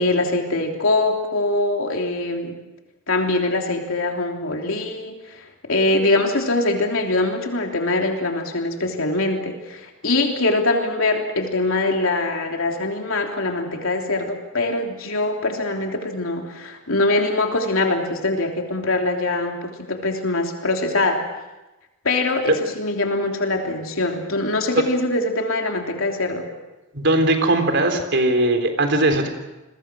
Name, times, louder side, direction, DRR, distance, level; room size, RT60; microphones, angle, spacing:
voice 1, 0.0-2.5 3.1-21.2 22.0-26.5, left 2 dB, 75° left, 2 dB, 3.3 m, -23 dB
voice 2, 26.9-29.3, right 1 dB, 55° right, 6 dB, 3.7 m, -19 dB
30.0 x 22.0 x 6.3 m, 1.0 s
head